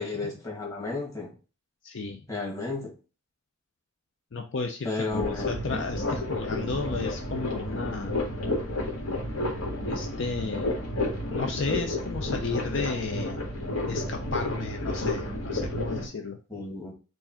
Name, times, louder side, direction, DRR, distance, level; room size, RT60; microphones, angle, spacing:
voice 1, 0.0-1.3 2.3-2.9 4.8-5.5 6.6-6.7 16.5-16.9, left 3 dB, 15° left, -3 dB, 1.7 m, -33 dB
voice 2, 1.8-2.2 4.3-8.2 9.8-10.7 11.3-13.4 13.9-16.4, left 4 dB, 55° left, 4 dB, 0.5 m, -33 dB
sound 1, 5.1-16.1, left 1 dB, 75° left, 1.6 m, -31 dB
4.6 x 2.5 x 4.2 m, 0.34 s
head